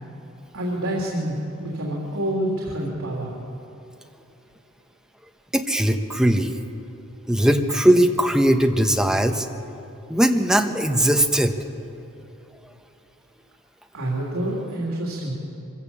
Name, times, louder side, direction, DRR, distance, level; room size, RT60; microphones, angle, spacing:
voice 1, 0.5-3.3 13.9-15.3, right 1 dB, 85° right, -3 dB, 3.3 m, -27 dB
voice 2, 5.5-6.5 7.3-9.5 10.1-11.6, right 1 dB, 5° right, 5 dB, 1.0 m, -19 dB
24.5 x 15.5 x 7.3 m, 2.9 s
head